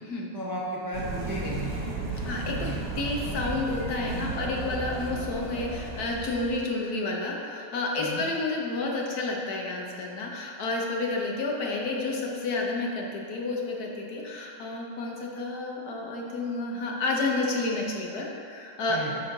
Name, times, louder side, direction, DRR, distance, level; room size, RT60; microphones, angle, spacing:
voice 1, 0.3-1.8 2.6-2.8 8.0-8.2 18.9-19.2, right 1 dB, 30° right, -6 dB, 0.3 m, -34 dB
sound 1, 0.9-6.6, right 3 dB, 75° right, 1.7 m, -34 dB
voice 2, 2.3-2.7 2.9-19.0, left 3 dB, 65° left, -1 dB, 1.3 m, -30 dB
10.5 x 4.3 x 2.6 m, 2.5 s
omnidirectional pair, 1.8 m